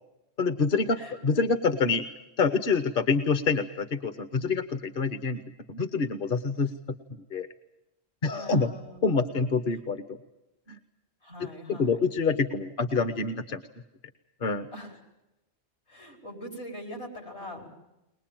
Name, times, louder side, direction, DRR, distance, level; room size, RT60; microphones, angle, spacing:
voice 1, 0.4-2.0 2.4-5.4 5.7-6.7 7.3-7.5 8.2-8.7 9.0-10.0 10.7-10.8 11.4-13.6 14.4-14.7, left 4 dB, 50° left, 9 dB, 1.2 m, -26 dB
voice 2, 8.3-9.5 11.2-12.0 14.7-15.0 15.9-17.7, equal, 75° left, 1 dB, 5.2 m, -42 dB
22.0 x 21.0 x 8.9 m, 0.93 s
omnidirectional pair, 1.2 m